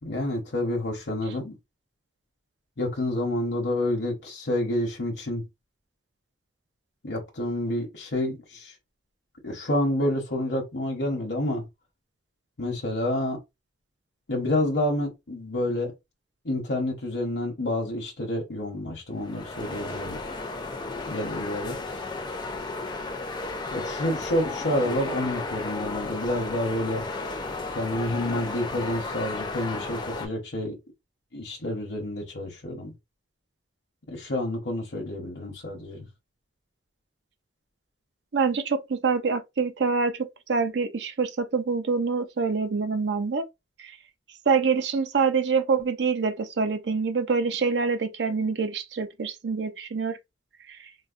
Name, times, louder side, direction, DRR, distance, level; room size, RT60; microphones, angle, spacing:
voice 1, 0.0-1.6 2.8-5.4 7.0-8.7 9.4-11.6 12.6-13.4 14.3-15.9 16.4-20.2 21.1-22.0 23.7-27.0 27.7-30.8 31.3-32.9 34.1-36.1, left 1 dB, 70° left, 0.8 m, -29 dB
sound 1, 19.1-30.3, left 3 dB, 25° left, 0.5 m, -34 dB
voice 2, 38.3-43.4 43.8-43.9 44.5-50.2 50.7-50.8, right 5 dB, 70° right, 0.5 m, -26 dB
3.9 x 2.0 x 2.4 m
head